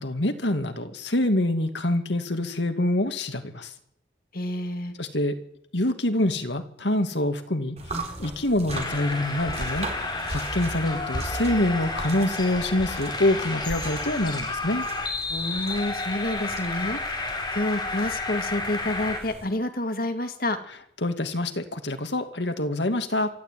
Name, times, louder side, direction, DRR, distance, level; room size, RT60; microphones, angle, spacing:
voice 1, 0.0-3.7 5.0-5.4 5.7-14.8 21.0-23.3, left 1 dB, 75° left, 8 dB, 2.4 m, -26 dB
voice 2, 4.3-4.9 15.3-20.6, left 1 dB, 50° left, 7 dB, 2.5 m, -29 dB
sound 1, 7.8-19.5, right 2 dB, 35° right, 4.0 m, -38 dB
sound 2, 8.7-19.2, left 3 dB, 25° left, 4.0 m, -31 dB
24.5 x 14.0 x 9.4 m, 0.73 s
head